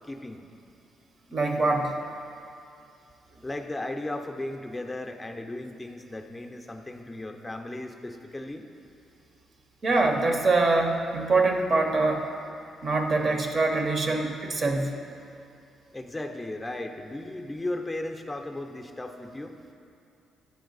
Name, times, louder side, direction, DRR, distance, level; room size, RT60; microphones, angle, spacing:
voice 1, 0.1-0.4 3.4-8.6 15.9-19.6, left 1 dB, 10° left, 4 dB, 0.6 m, -36 dB
voice 2, 1.3-2.0 9.8-12.3 12.8-15.0, right 3 dB, 40° right, 3 dB, 0.8 m, -24 dB
9.4 x 4.5 x 3.9 m, 2.6 s
cardioid pair, 90°, 0 cm